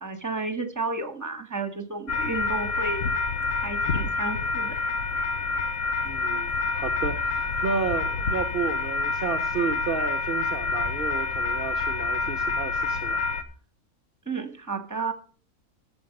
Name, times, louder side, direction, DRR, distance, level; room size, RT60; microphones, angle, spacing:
voice 1, 0.0-3.1 3.6-4.8 14.2-15.1, right 3 dB, 15° right, 1.5 m, -32 dB
sound 1, 2.1-13.4, left 4 dB, 60° left, 1.2 m, -27 dB
voice 2, 6.0-13.2, right 6 dB, 45° right, 0.8 m, -32 dB
13.5 x 7.2 x 5.3 m
omnidirectional pair, 1.5 m